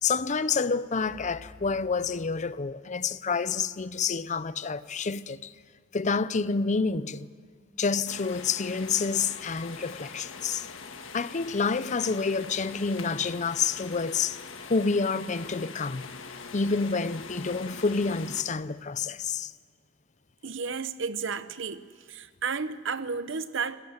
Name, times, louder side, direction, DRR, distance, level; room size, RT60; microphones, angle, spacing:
voice 1, 0.0-5.5 5.9-7.3 7.8-10.7 11.1-14.4 14.7-16.2 16.5-19.5, left 4 dB, 35° left, 0.6 m, -28 dB
sound 1, 8.1-18.4, left 5 dB, 70° left, 1.6 m, -43 dB
voice 2, 20.4-21.8 22.1-23.8, right 5 dB, 65° right, 0.9 m, -32 dB
26.0 x 17.5 x 8.0 m
head